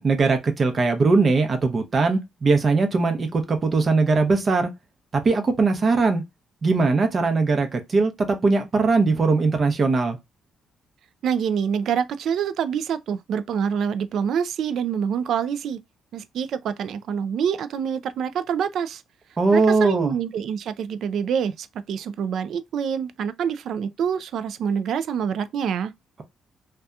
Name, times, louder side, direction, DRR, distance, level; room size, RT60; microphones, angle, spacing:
voice 1, 0.0-4.7 5.1-6.2 6.6-10.2 19.4-20.1, right 3 dB, 40° right, 0.7 m, -20 dB
voice 2, 11.2-15.8 16.1-19.0 19.5-25.9, right 7 dB, 70° right, 0.3 m, -26 dB
2.7 x 2.2 x 2.3 m
cardioid pair, 90°, 0 cm